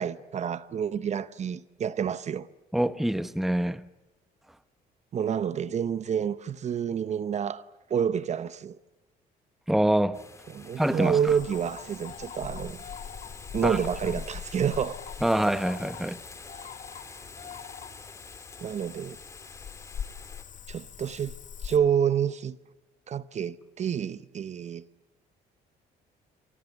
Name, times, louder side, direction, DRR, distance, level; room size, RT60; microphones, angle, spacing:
voice 1, 0.0-2.5 5.1-7.6 7.9-8.8 10.5-12.8 13.5-15.0 18.6-19.2 20.7-21.4 21.6-22.6 23.1-24.8, right 8 dB, 40° right, 0.9 m, -28 dB
voice 2, 2.7-3.8 9.7-10.2 10.8-11.2 13.6-13.8 15.2-16.2, right 1 dB, ahead, 0.9 m, -25 dB
sound 1, 10.1-20.4, left 3 dB, 15° left, 2.9 m, -48 dB
Cricket / Frog, 11.3-21.8, left 8 dB, 50° left, 1.8 m, -42 dB
28.5 x 24.0 x 8.2 m
cardioid pair, 110°, 17 cm